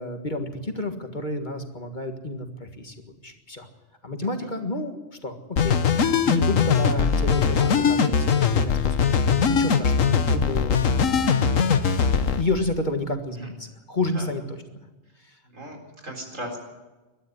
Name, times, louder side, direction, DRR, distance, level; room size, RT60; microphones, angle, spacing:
voice 1, 0.0-2.9 3.2-3.7 4.0-5.8 6.3-14.9 15.2-15.4, left 2 dB, 35° left, 5 dB, 1.9 m, -31 dB
sound 1, 5.6-12.4, left 6 dB, 90° left, 1.5 m, -21 dB
voice 2, 15.5-16.6, equal, 85° right, 3 dB, 4.7 m, -37 dB
21.5 x 12.5 x 9.8 m, 1.1 s
omnidirectional pair, 1.3 m